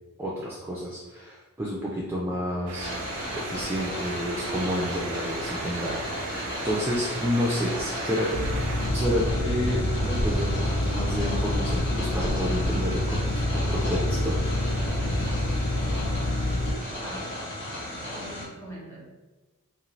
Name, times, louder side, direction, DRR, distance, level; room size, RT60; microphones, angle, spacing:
voice 1, 0.2-2.9 3.3-8.3 8.9-13.2 13.5-14.4, equal, 10° right, -5 dB, 0.3 m, -30 dB
sound 1, 2.7-8.9, right 3 dB, 85° right, 0.5 m, -37 dB
sound 2, 2.8-18.4, left 1 dB, 55° left, 1.2 m, -35 dB
sound 3, 8.3-16.7, left 1 dB, 75° left, 0.4 m, -27 dB
voice 2, 15.7-16.5 17.0-17.3 18.1-19.0, equal, 15° left, -7 dB, 1.0 m, -44 dB
2.6 x 2.5 x 3.0 m, 1.2 s
head